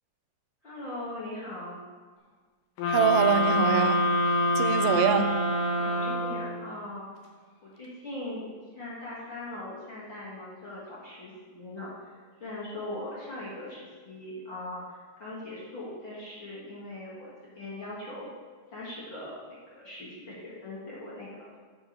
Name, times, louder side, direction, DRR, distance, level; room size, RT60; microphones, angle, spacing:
voice 1, 0.6-1.8 4.7-5.2 5.7-7.1 7.6-8.5 8.7-18.3 18.7-21.5, left 1 dB, 45° left, -7 dB, 1.8 m, -40 dB
sound 1, 2.8-6.7, left 1 dB, 85° left, 2.5 m, -26 dB
voice 2, 2.9-4.1 4.6-5.4, right 8 dB, 85° right, 9 dB, 2.1 m, -24 dB
7.1 x 4.6 x 6.2 m, 1.5 s
omnidirectional pair, 3.7 m